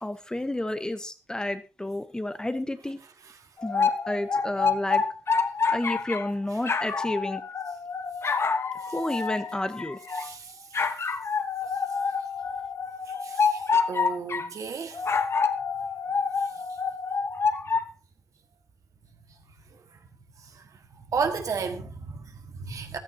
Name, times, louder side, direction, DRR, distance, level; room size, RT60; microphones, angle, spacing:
voice 1, 0.0-3.0 3.6-5.0 5.7-7.4 8.9-10.0, left 1 dB, 15° left, 1.0 m, -31 dB
sound 1, 3.6-6.3 6.6-10.3 10.7-14.5 14.9-17.9, left 5 dB, 50° left, 1.0 m, -27 dB
voice 2, 10.1-10.9 13.1-15.1 16.4-16.6 19.7-20.0 20.4-23.0, right 5 dB, 90° right, 1.9 m, -34 dB
15.0 x 14.0 x 2.9 m
wide cardioid pair, 140°, 6 cm